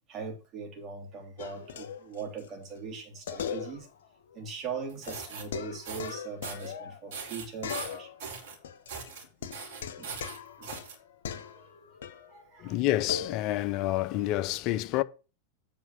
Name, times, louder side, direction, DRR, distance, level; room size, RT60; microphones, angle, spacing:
voice 1, 0.0-3.9 4.3-8.1 9.4-9.5 10.0-10.1 10.6-10.7 11.3-12.0 12.3-12.8, right 5 dB, 30° right, 3.1 m, -41 dB
sound 1, 1.4-2.5 2.7-2.8 3.3-4.1 4.3-4.4 5.1-7.3 7.6-8.3 8.6-12.3 13.1-13.4, left 7 dB, 60° left, 0.9 m, -39 dB
sound 2, 4.9-5.4 5.8-6.1 6.4-6.7 7.1-8.6 8.9-9.2 9.5-10.9, right 5 dB, 55° right, 3.0 m, -40 dB
voice 2, 12.6-15.0, left 15 dB, 40° left, 0.6 m, -28 dB
8.5 x 4.5 x 6.6 m
figure-of-eight pair, 90°, 0 cm